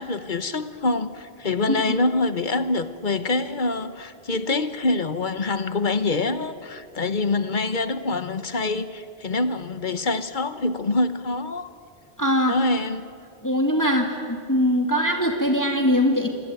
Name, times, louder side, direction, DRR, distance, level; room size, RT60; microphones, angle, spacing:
voice 1, 0.0-11.7 12.4-13.0, left 3 dB, 50° left, 12 dB, 1.3 m, -25 dB
voice 2, 12.2-12.6 13.4-16.3, equal, 15° left, 3 dB, 2.4 m, -21 dB
27.0 x 23.0 x 9.1 m, 2.4 s
omnidirectional pair, 1.1 m